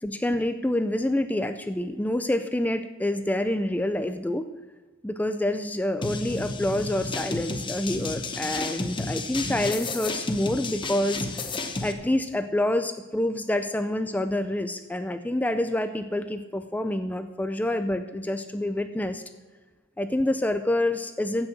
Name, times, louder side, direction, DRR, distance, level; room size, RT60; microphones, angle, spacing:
voice 1, 0.0-4.5 5.0-19.2 20.0-21.5, left 1 dB, 10° left, 9 dB, 0.4 m, -27 dB
sound 1, 6.0-11.9, left 3 dB, 25° left, 0.8 m, -32 dB
15.0 x 6.3 x 6.1 m, 1.3 s
head